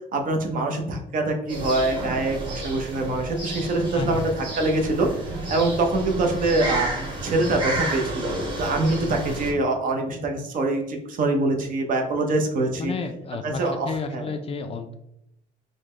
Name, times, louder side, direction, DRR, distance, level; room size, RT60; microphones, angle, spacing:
voice 1, 0.1-5.1 5.5-6.9 7.2-8.3 8.6-12.9 13.4-14.2, right 2 dB, 55° right, 4 dB, 0.7 m, -24 dB
sound 1, 1.5-9.5, right 2 dB, 30° right, 1.2 m, -31 dB
voice 2, 9.0-9.4 12.8-14.9, left 4 dB, 35° left, 7 dB, 0.4 m, -31 dB
3.9 x 2.1 x 3.1 m, 0.79 s
cardioid pair, 110°, 17 cm